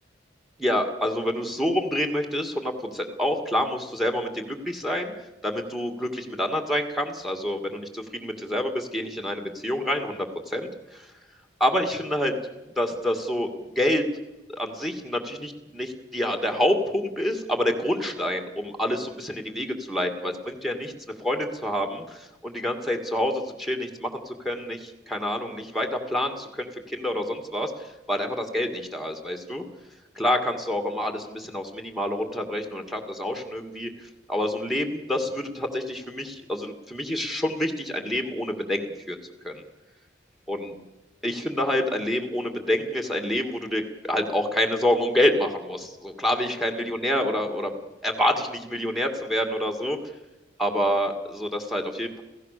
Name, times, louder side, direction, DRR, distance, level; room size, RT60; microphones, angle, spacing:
voice 1, 0.6-5.1 5.4-11.1 11.6-12.3 12.8-13.5 13.8-14.0 14.5-20.9 21.2-27.7 28.1-29.6 30.2-39.2 39.4-39.6 40.5-40.7 41.2-47.7 48.0-50.0 50.6-52.2, left 1 dB, ahead, 5 dB, 2.3 m, -27 dB
28.0 x 16.5 x 6.8 m, 0.99 s
head